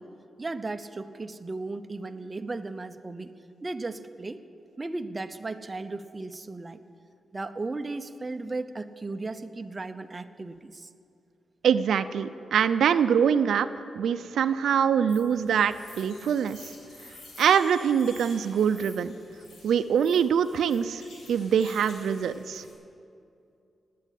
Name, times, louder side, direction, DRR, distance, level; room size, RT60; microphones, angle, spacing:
voice 1, 0.4-3.3 3.6-4.4 4.8-6.8 7.3-10.9, right 3 dB, 20° right, 8 dB, 0.7 m, -35 dB
voice 2, 11.6-13.7 14.0-16.6 17.4-19.1 19.6-21.0 21.3-22.6, right 8 dB, 90° right, 11 dB, 0.5 m, -24 dB
sound 1, 15.1-22.7, left 2 dB, 80° left, 5.2 m, -50 dB
18.0 x 9.3 x 8.4 m, 2.5 s
wide cardioid pair, 140°, 0 cm